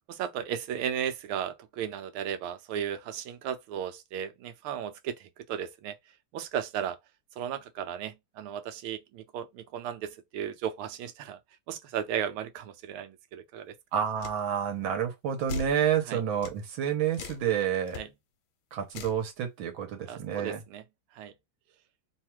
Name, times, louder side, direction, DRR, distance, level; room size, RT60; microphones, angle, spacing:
voice 1, 0.1-6.0 6.3-7.0 7.4-11.4 11.7-13.8 16.1-16.2 18.0-18.1 20.1-20.8 21.1-21.3, right 9 dB, 90° right, 1.6 m, -35 dB
voice 2, 13.9-18.0 18.7-20.6, right 9 dB, 75° right, 1.7 m, -29 dB
sound 1, 14.2-14.4 15.5-15.8 16.4-16.6 17.1-17.5 17.9-18.0 18.9-19.2, left 4 dB, 75° left, 1.5 m, -38 dB
3.7 x 2.4 x 4.4 m
omnidirectional pair, 2.3 m